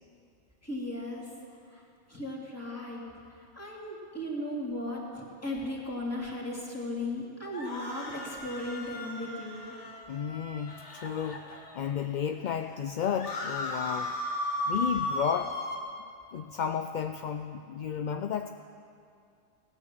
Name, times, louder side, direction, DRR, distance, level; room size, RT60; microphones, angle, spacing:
voice 1, 0.6-1.3 1.7-1.8 2.1-3.0 3.4-9.8, left 1 dB, 10° left, -4 dB, 2.7 m, -36 dB
sound 1, 7.5-11.9 12.4-12.5 12.7-15.8, left 1 dB, 75° left, 1.9 m, -36 dB
voice 2, 10.1-14.1 14.7-15.5 16.3-18.5, left 8 dB, 55° left, 6 dB, 0.5 m, -32 dB
17.5 x 9.8 x 7.5 m, 2.5 s
omnidirectional pair, 1.2 m